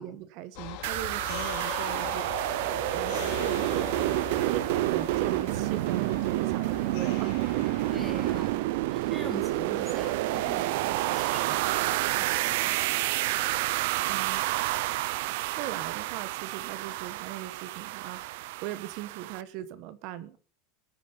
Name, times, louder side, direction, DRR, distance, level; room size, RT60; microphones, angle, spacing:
voice 1, 0.0-2.3 2.9-3.9 4.4-7.6 9.0-9.2 14.1-14.4 14.9-20.4, right 13 dB, 50° right, 15 dB, 1.3 m, -40 dB
sound 1, 0.5-8.5, left 12 dB, 60° left, 4.9 m, -40 dB
sound 2, 0.8-19.4, right 18 dB, 70° right, 0.6 m, -29 dB
voice 2, 4.9-5.3 7.9-12.8, equal, ahead, 3 dB, 4.3 m, -44 dB
21.0 x 8.5 x 5.5 m, 0.41 s
supercardioid pair, 155°, 0 cm